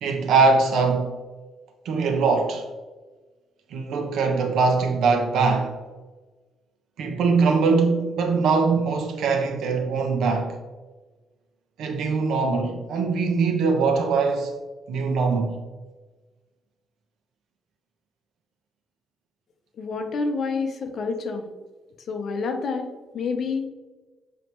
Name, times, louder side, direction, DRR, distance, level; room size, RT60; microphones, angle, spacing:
voice 1, 0.0-1.1 1.8-2.6 3.7-5.7 7.0-10.6 11.8-14.5 14.9-15.6, right 4 dB, 80° right, 1.1 m, -22 dB
voice 2, 19.8-21.5 22.1-23.7, left 4 dB, 55° left, 1.0 m, -28 dB
7.4 x 5.1 x 3.1 m
cardioid pair, 125°, 0 cm